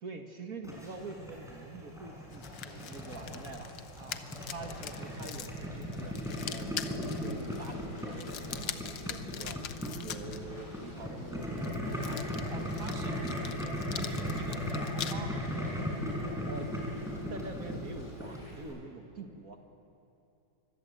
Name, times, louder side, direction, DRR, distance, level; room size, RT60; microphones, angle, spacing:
voice 1, 0.0-3.7 4.5-6.2 6.5-9.6 9.9-12.2 16.5-16.9 17.3-19.6, right 3 dB, 50° right, 4 dB, 2.2 m, -46 dB
Boiling, 0.6-18.7, left 1 dB, ahead, 5.5 m, -37 dB
sound 1, 1.8-18.6, right 1 dB, 45° left, 6.1 m, -51 dB
sound 2, 2.3-10.4 11.4-15.1, left 10 dB, 80° left, 1.6 m, -43 dB
voice 2, 12.5-13.2 13.9-15.7, right 4 dB, 20° right, 5 dB, 1.2 m, -48 dB
25.5 x 24.5 x 8.0 m, 2.8 s
omnidirectional pair, 2.0 m